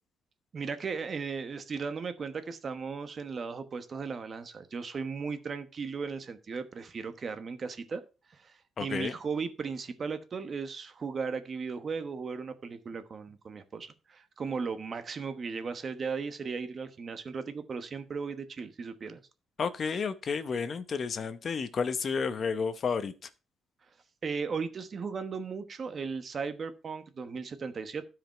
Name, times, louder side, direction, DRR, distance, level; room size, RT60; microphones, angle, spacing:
voice 1, 0.5-8.0 8.3-19.2 24.2-28.0, right 5 dB, 35° right, 1.1 m, -36 dB
voice 2, 8.8-9.2 19.6-23.1, left 5 dB, 40° left, 0.8 m, -31 dB
12.5 x 5.1 x 4.5 m
cardioid pair, 140°, 0 cm